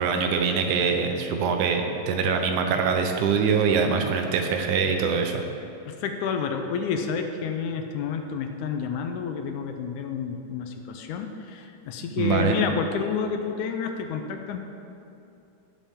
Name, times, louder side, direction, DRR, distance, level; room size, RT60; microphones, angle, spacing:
voice 1, 0.0-5.4 12.2-12.5, right 5 dB, 75° right, 4 dB, 2.2 m, -24 dB
voice 2, 5.9-14.6, left 6 dB, 80° left, 5 dB, 2.1 m, -29 dB
18.0 x 7.3 x 3.6 m, 2.8 s
omnidirectional pair, 3.7 m